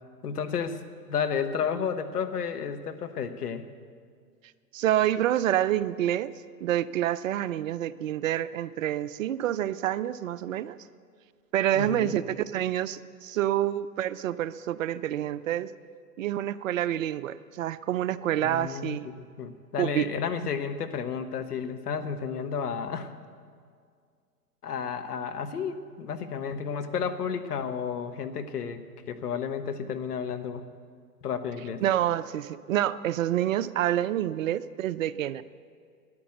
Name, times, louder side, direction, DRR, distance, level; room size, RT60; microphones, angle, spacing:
voice 1, 0.2-0.8 1.1-3.6 11.7-12.2 18.4-23.1 24.6-30.6 31.2-31.8, left 6 dB, 70° left, 8 dB, 1.3 m, -32 dB
voice 2, 4.7-6.3 6.6-10.8 11.5-15.7 16.2-19.1 19.8-20.1 31.8-35.4, right 12 dB, 55° right, 16 dB, 0.6 m, -27 dB
13.5 x 10.5 x 7.9 m, 2.1 s
figure-of-eight pair, 105°, 47 cm